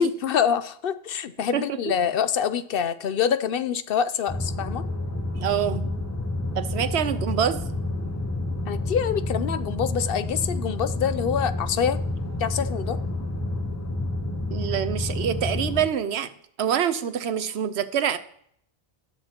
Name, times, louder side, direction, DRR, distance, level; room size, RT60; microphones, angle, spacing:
voice 1, 0.0-4.9 8.7-12.0 12.4-13.0, left 8 dB, 65° left, 13 dB, 0.7 m, -25 dB
sound 1, 4.3-15.9, left 2 dB, 15° left, 0.8 m, -29 dB
voice 2, 5.3-6.0 6.5-7.6 14.5-16.3 16.6-18.2, right 9 dB, 85° right, 12 dB, 1.0 m, -26 dB
19.5 x 6.5 x 2.9 m, 0.68 s
omnidirectional pair, 1.1 m